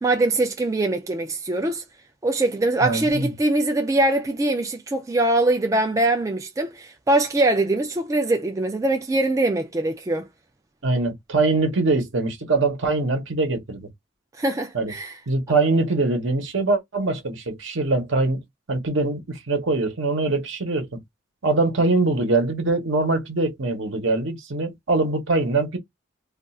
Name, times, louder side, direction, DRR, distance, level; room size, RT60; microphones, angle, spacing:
voice 1, 0.0-1.8 2.2-10.3 14.4-15.1, right 2 dB, 15° right, 0.3 m, -22 dB
voice 2, 2.8-3.3 10.8-13.9 14.7-14.9 15.3-18.4 18.7-21.0 21.4-25.8, right 3 dB, 65° right, 0.9 m, -23 dB
2.4 x 2.3 x 4.0 m
head